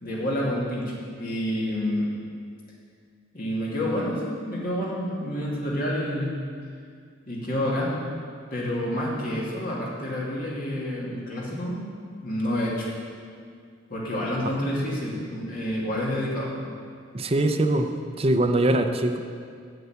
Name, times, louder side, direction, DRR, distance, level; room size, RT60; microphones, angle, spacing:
voice 1, 0.0-2.1 3.3-6.4 7.3-7.9 8.5-11.8 12.2-12.9 13.9-16.5, left 1 dB, 50° left, -5 dB, 2.5 m, -28 dB
voice 2, 17.1-17.9 18.2-19.2, right 1 dB, 30° right, 5 dB, 0.6 m, -22 dB
8.0 x 7.1 x 8.2 m, 2.2 s
head